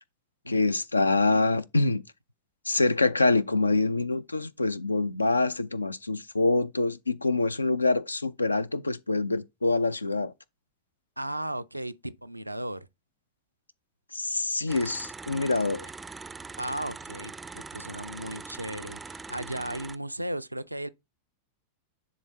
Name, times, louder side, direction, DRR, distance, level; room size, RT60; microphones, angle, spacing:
voice 1, 0.5-2.0 2.7-10.3 14.1-15.9, left 3 dB, 80° left, 0.4 m, -25 dB
voice 2, 11.2-12.9 16.6-20.9, right 1 dB, 85° right, 0.4 m, -35 dB
sound 1, 14.7-20.0, right 4 dB, 10° right, 0.4 m, -42 dB
10.0 x 3.7 x 2.8 m
figure-of-eight pair, 90°, 0 cm